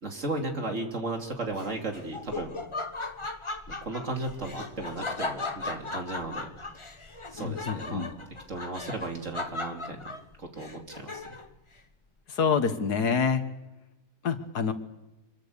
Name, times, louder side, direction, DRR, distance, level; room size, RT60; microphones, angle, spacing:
voice 1, 0.0-2.5 3.7-6.5 7.3-8.1 8.5-10.0 10.4-11.2, right 2 dB, 50° right, 2 dB, 3.2 m, -35 dB
Laughter, 1.5-11.6, left 3 dB, 20° left, 0.9 m, -37 dB
voice 2, 7.4-8.1 12.3-13.4 14.2-14.7, left 6 dB, 80° left, 9 dB, 2.0 m, -27 dB
26.0 x 22.5 x 6.8 m, 0.98 s
omnidirectional pair, 1.7 m